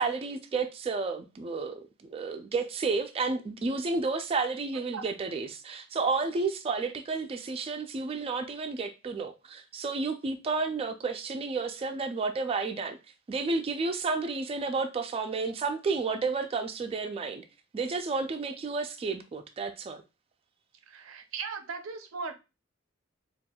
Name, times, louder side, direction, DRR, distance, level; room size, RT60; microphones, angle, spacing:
voice 1, 0.0-1.8 2.1-13.0 13.3-17.4 17.7-20.0, right 4 dB, 30° right, 0.3 m, -31 dB
voice 2, 20.9-22.3, right 5 dB, 85° right, 0.5 m, -37 dB
4.3 x 2.4 x 2.2 m
head